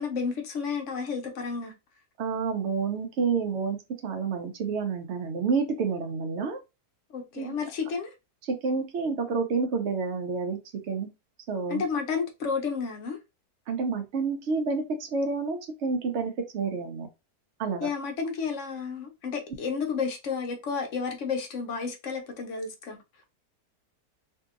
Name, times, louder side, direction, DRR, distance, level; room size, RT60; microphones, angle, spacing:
voice 1, 0.0-1.7 7.1-8.1 11.7-13.2 17.8-23.0, left 5 dB, 60° left, 0.8 m, -31 dB
voice 2, 2.2-3.8 4.0-6.6 7.4-7.6 8.5-10.6 10.9-11.1 11.5-11.8 13.7-17.1 17.6-17.9, right 4 dB, 60° right, 0.7 m, -29 dB
2.7 x 2.7 x 2.4 m
omnidirectional pair, 1.7 m